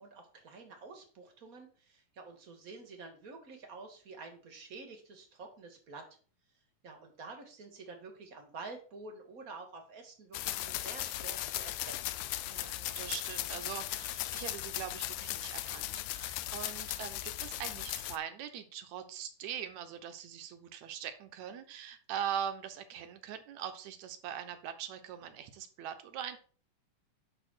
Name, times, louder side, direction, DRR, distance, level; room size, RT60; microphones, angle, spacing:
voice 1, 0.0-6.1 6.8-12.1, right 3 dB, 40° right, 3 dB, 1.2 m, -49 dB
sound 1, 10.3-18.2, left 15 dB, 85° left, 1.7 m, -37 dB
voice 2, 12.5-26.4, right 9 dB, 70° right, 9 dB, 2.0 m, -42 dB
10.0 x 3.6 x 6.2 m, 0.40 s
omnidirectional pair, 3.8 m